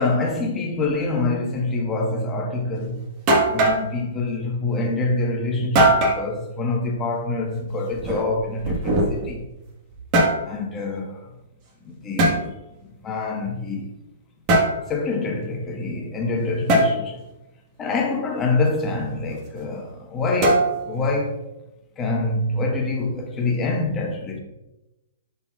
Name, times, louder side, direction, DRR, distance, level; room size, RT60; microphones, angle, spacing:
voice 1, 0.0-3.0 3.5-9.5 10.4-11.3 11.8-12.5 13.0-13.9 14.9-17.2 17.8-21.4 22.0-24.4, left 2 dB, 20° left, 1.3 m, -26 dB
sound 1, 2.8-2.9 3.3-3.9 5.8-6.2 7.9-9.4 9.9-10.4 12.2-12.4 14.5-14.8 16.7-16.9 20.4-21.0, right 1 dB, 35° right, 1.5 m, -19 dB
10.5 x 4.1 x 2.4 m
hypercardioid pair, 130°, 0 cm